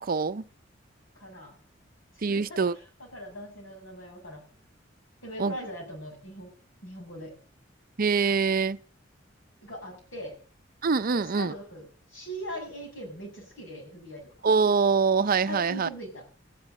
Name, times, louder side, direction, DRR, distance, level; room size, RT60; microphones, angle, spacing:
voice 1, 0.0-0.4 2.2-2.7 5.4-5.5 8.0-8.8 10.8-11.5 14.4-15.9, right 5 dB, 50° right, 0.6 m, -24 dB
voice 2, 1.2-1.6 2.1-4.5 5.2-6.5 6.8-7.3 9.6-10.4 11.1-14.3 15.5-16.4, equal, 85° left, 7.2 m, -41 dB
15.0 x 10.5 x 6.6 m
head